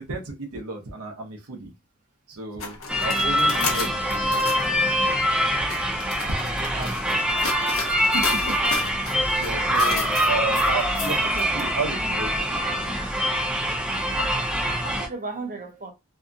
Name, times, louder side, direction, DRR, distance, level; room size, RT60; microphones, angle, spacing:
voice 1, 0.0-1.7 2.3-4.5 7.9-8.6 9.4-13.0, right 3 dB, 75° right, 0.8 m, -33 dB
sound 1, 2.6-4.7 5.4-11.6, left 4 dB, 65° left, 0.7 m, -33 dB
sound 2, 2.9-15.1, equal, 5° right, 0.3 m, -24 dB
voice 2, 6.2-7.2 8.4-8.8 14.2-14.4 14.8-15.9, right 3 dB, 35° right, 0.7 m, -36 dB
2.7 x 2.3 x 2.5 m
head